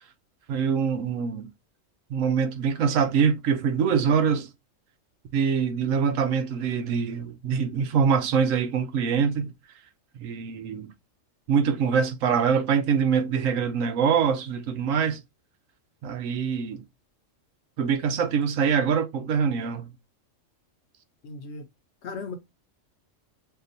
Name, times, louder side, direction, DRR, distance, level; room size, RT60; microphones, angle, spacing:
voice 1, 0.5-1.5 2.1-4.5 5.3-9.5 10.2-10.9 11.5-15.2 16.0-16.8 17.8-19.9, right 6 dB, 85° right, 1.1 m, -24 dB
voice 2, 21.2-21.6 22.0-22.4, left 4 dB, 65° left, 0.9 m, -36 dB
6.6 x 2.3 x 2.6 m
omnidirectional pair, 1.3 m